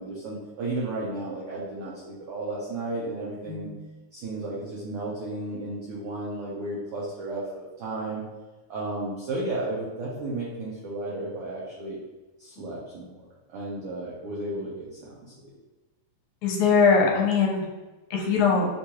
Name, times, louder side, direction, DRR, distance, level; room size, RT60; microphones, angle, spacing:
voice 1, 0.0-3.7 4.1-8.2 8.7-12.0 12.4-15.3, right 2 dB, 80° right, -6 dB, 1.3 m, -33 dB
voice 2, 16.4-17.7 18.1-18.7, left 5 dB, 80° left, -1 dB, 2.1 m, -21 dB
6.6 x 2.3 x 2.9 m, 1.2 s
omnidirectional pair, 3.5 m